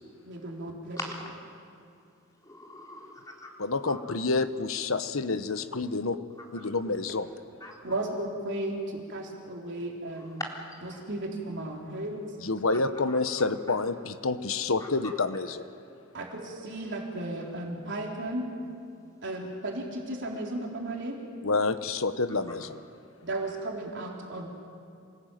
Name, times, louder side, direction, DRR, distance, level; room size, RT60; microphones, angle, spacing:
voice 1, 0.2-1.0 7.8-10.4 10.8-12.3 16.1-18.5 19.2-21.2 23.2-24.5, right 1 dB, 60° right, -1 dB, 3.8 m, -35 dB
voice 2, 2.4-3.5 3.9-4.0 6.5-6.7 7.6-7.7 10.2-10.5 10.9-11.0 12.7-12.8 13.1-13.2 14.8-14.9, left 2 dB, 15° left, -1 dB, 4.0 m, -40 dB
voice 3, 3.6-6.2 6.5-7.3 12.4-15.6 21.4-22.8, left 3 dB, 80° left, 11 dB, 1.1 m, -28 dB
27.0 x 19.0 x 9.3 m, 2.6 s
head